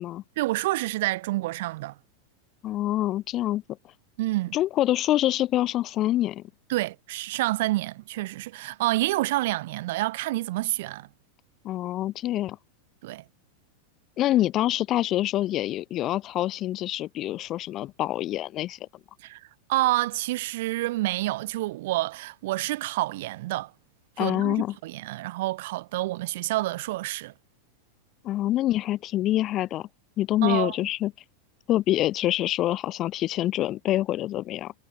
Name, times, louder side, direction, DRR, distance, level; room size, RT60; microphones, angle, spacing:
voice 1, 0.4-1.9 4.2-4.6 6.7-11.1 13.0-13.2 19.2-19.4 19.7-23.7 24.2-27.3 30.4-30.7, right 18 dB, 50° right, 0.5 m, -28 dB
voice 2, 2.6-3.6 4.5-6.4 11.6-12.6 14.2-18.8 24.2-24.7 28.2-29.9 30.2-31.1 31.7-34.7, left 14 dB, 35° left, 0.5 m, -26 dB
figure-of-eight pair, 90°, 0 cm